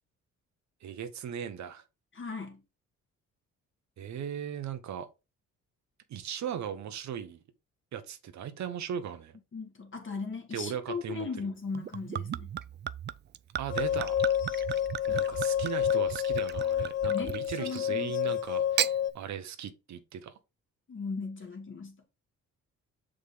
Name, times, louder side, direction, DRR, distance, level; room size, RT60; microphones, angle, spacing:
voice 1, 0.8-1.8 4.0-5.1 6.1-7.4 7.9-9.4 10.5-11.3 13.6-14.2 15.1-20.3, right 8 dB, 65° right, 1.2 m, -38 dB
voice 2, 2.1-2.6 9.5-12.5 15.1-15.3 17.1-18.1 20.9-22.0, left 4 dB, 40° left, 2.4 m, -38 dB
Gurgling / Chink clink / Liquid, 11.7-17.9 18.6-19.0, right 9 dB, 35° right, 0.4 m, -35 dB
sound 1, 13.7-19.1, left 10 dB, 55° left, 0.9 m, -29 dB
6.5 x 5.1 x 3.7 m
cardioid pair, 90°, 30 cm